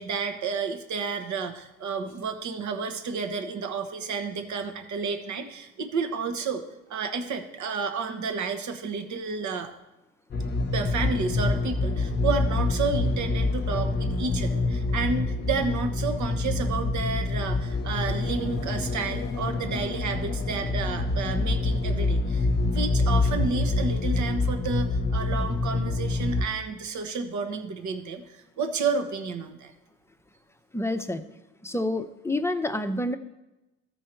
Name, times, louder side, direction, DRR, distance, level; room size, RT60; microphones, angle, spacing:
voice 1, 0.0-6.6 6.9-9.7 10.7-22.5 22.7-29.7, right 5 dB, 70° right, 7 dB, 1.2 m, -31 dB
sound 1, 10.3-26.5, left 2 dB, 35° left, 0.9 m, -26 dB
voice 2, 30.7-31.2 31.6-33.2, left 1 dB, 10° left, 8 dB, 0.6 m, -28 dB
14.0 x 4.7 x 4.5 m, 0.99 s
cardioid pair, 90°, 30 cm